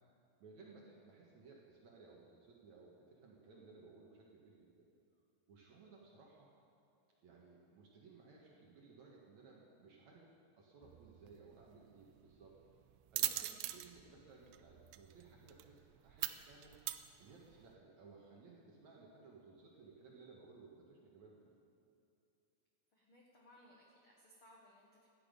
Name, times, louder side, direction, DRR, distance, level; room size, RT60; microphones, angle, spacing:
voice 1, 0.4-4.9 5.5-6.5 7.2-10.3 10.6-12.6 13.1-16.8 17.2-21.5, right 4 dB, 55° right, -3 dB, 2.1 m, -60 dB
sound 1, 10.8-17.7, right 15 dB, 85° right, 2.5 m, -44 dB
voice 2, 22.9-25.1, left 1 dB, 90° left, -3 dB, 1.2 m, -64 dB
17.0 x 12.5 x 5.3 m, 2.8 s
omnidirectional pair, 5.2 m